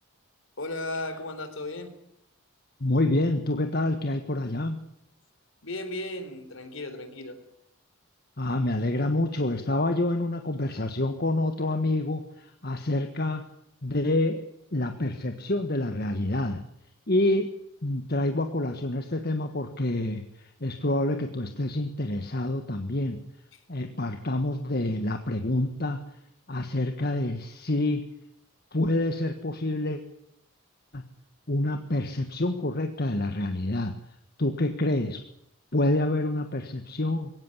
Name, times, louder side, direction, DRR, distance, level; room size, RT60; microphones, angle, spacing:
voice 1, 0.6-1.9 5.6-7.4, left 2 dB, 60° left, 10 dB, 3.9 m, -35 dB
voice 2, 2.8-4.8 8.4-13.4 13.8-14.4 14.7-16.6 17.1-17.5 17.8-23.2 23.7-26.2 26.5-28.1 28.7-30.0 30.9-31.0 31.5-34.0 34.4-35.2 35.7-37.3, left 1 dB, 45° left, 7 dB, 1.6 m, -27 dB
22.5 x 17.5 x 9.8 m, 0.75 s
head